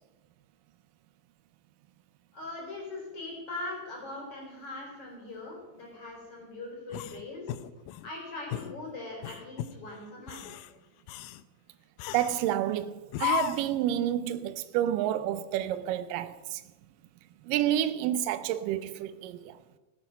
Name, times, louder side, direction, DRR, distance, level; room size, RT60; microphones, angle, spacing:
voice 1, 2.3-7.5 8.0-10.6, left 2 dB, 40° left, 4.6 m, -41 dB
sound 1, 6.9-8.1 8.5-8.8 9.2-9.8 10.2-10.7 11.1-11.4 12.0-12.5 13.1-13.8, left 15 dB, 80° left, 2.2 m, -35 dB
voice 2, 12.1-16.6 17.4-19.6, right 11 dB, 80° right, 2.3 m, -29 dB
17.5 x 8.9 x 5.6 m
omnidirectional pair, 3.9 m